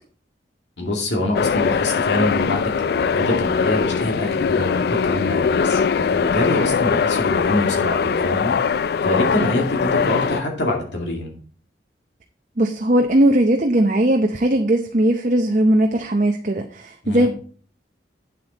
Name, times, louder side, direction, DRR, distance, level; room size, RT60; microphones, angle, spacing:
voice 1, 0.8-8.5 9.0-11.3 17.0-17.3, left 1 dB, 90° left, 0 dB, 2.3 m, -25 dB
sound 1, 1.3-10.4, left 6 dB, 60° left, 0.3 m, -21 dB
voice 2, 12.6-17.3, right 1 dB, 45° right, 4 dB, 0.7 m, -18 dB
8.6 x 7.7 x 4.0 m, 0.44 s
head